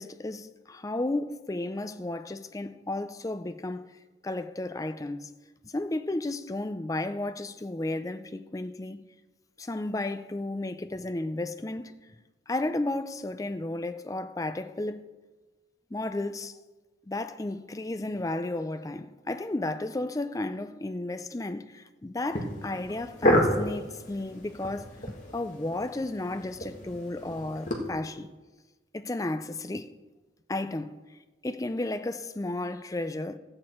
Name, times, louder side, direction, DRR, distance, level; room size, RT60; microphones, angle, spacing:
voice 1, 0.0-3.9 4.2-5.3 5.6-9.0 9.6-11.9 12.5-15.1 15.9-16.5 17.1-28.3 28.9-29.9 30.5-31.0 31.4-33.4, left 2 dB, 20° left, 0.4 m, -33 dB
sound 1, 22.3-27.8, equal, 40° left, 1.7 m, -30 dB
14.0 x 8.7 x 4.4 m
head